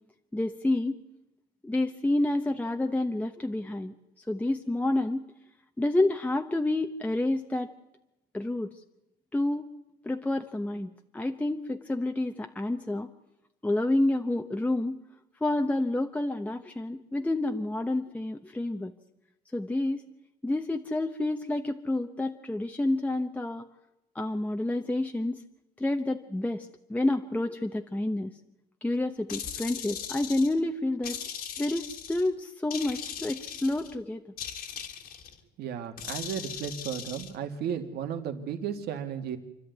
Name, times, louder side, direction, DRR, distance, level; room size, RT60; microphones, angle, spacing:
voice 1, 0.3-1.0 1.6-3.9 4.3-5.3 5.8-7.7 8.3-8.7 9.3-9.7 10.0-13.1 13.6-15.0 15.4-18.9 19.5-20.0 20.4-23.6 24.1-25.4 25.8-28.3 28.8-31.2 31.6-34.2, left 2 dB, 10° left, 4 dB, 1.0 m, -29 dB
sound 1, 29.3-30.6 31.0-32.3 32.7-33.9 34.4-35.3 36.0-37.3, left 8 dB, 60° left, 2.2 m, -39 dB
voice 2, 35.6-39.4, right 8 dB, 75° right, 6 dB, 2.2 m, -34 dB
28.0 x 12.0 x 9.5 m, 0.94 s
cardioid pair, 110°, 17 cm